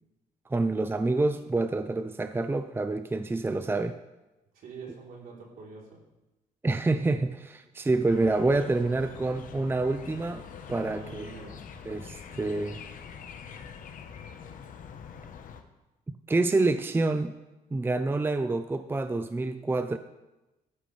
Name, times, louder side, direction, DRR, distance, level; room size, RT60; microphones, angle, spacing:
voice 1, 0.5-4.0 6.6-10.4 10.7-11.3 11.9-12.8 16.1-17.4 17.7-20.0, right 2 dB, 15° right, 10 dB, 0.5 m, -27 dB
voice 2, 4.5-6.0 10.8-11.6, right 4 dB, 75° right, -3 dB, 3.5 m, -45 dB
sound 1, 8.1-15.6, left 7 dB, 65° left, 1.0 m, -44 dB
13.0 x 11.5 x 3.3 m, 1.0 s
cardioid pair, 85°, 15 cm